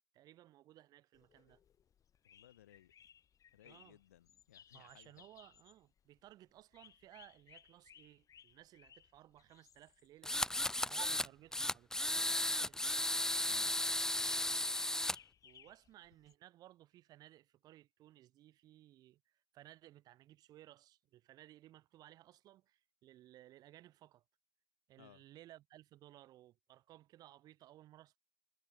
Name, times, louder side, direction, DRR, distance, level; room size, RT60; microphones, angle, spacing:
voice 1, 0.1-1.6 3.6-4.0 4.7-10.5 10.8-12.8 15.4-24.2 24.9-28.2, right 14 dB, 65° right, 6.7 m, -59 dB
sound 1, 1.1-16.3, left 8 dB, 55° left, 5.8 m, -64 dB
voice 2, 2.2-2.9 3.5-5.3 13.4-13.8 25.0-25.2, left 13 dB, 85° left, 4.4 m, -62 dB
sound 2, 10.2-11.3 11.5-15.1, left 1 dB, 10° left, 0.5 m, -35 dB
figure-of-eight pair, 45°, 7 cm